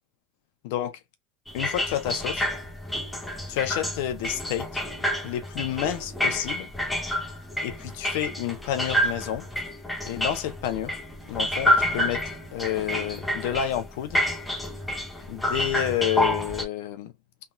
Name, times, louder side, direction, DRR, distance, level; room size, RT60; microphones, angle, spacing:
voice 1, 0.6-1.0 1.5-2.5 3.5-4.7 5.2-6.7 7.6-9.5 10.1-11.0 11.3-12.2 12.5-14.2 15.3-17.1, left 11 dB, 65° left, 0.8 m, -29 dB
sound 1, 1.5-16.6, left 1 dB, 5° left, 0.7 m, -29 dB
3.5 x 2.4 x 2.7 m
supercardioid pair, 175°, 0 cm